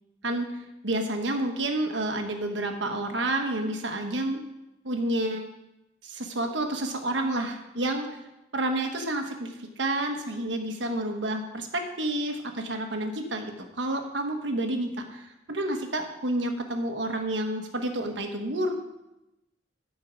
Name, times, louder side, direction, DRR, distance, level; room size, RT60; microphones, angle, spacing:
voice 1, 0.8-4.4 4.8-5.4 6.0-8.1 8.5-13.5 13.8-18.8, right 1 dB, 80° right, 4 dB, 1.3 m, -29 dB
13.5 x 4.6 x 5.1 m, 0.92 s
head